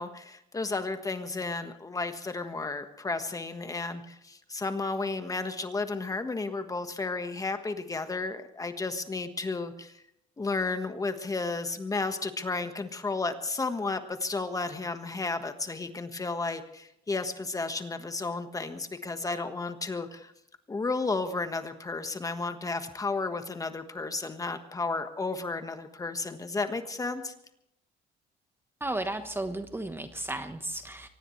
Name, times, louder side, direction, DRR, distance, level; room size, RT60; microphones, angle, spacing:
voice 1, 0.0-10.0 10.4-20.3 20.7-27.3, left 3 dB, 20° left, 8 dB, 1.5 m, -33 dB
voice 2, 28.8-31.1, right 2 dB, 15° right, 8 dB, 1.2 m, -34 dB
24.0 x 18.5 x 3.3 m, 0.75 s
cardioid pair, 110°, 17 cm